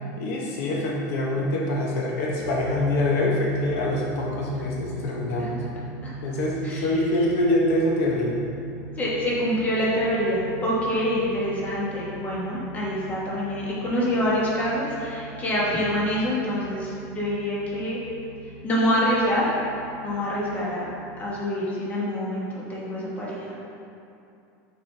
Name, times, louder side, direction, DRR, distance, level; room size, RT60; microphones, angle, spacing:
voice 1, 0.2-5.6 6.2-8.4, left 1 dB, 65° left, -2 dB, 0.8 m, -25 dB
sound 1, 2.4-21.4, right 2 dB, 40° left, 1.4 m, -40 dB
voice 2, 9.0-18.0 18.6-19.5 20.0-20.9 21.2-23.5, equal, 15° left, -6 dB, 1.1 m, -26 dB
6.2 x 4.6 x 3.3 m, 2.7 s
supercardioid pair, 160°, 9 cm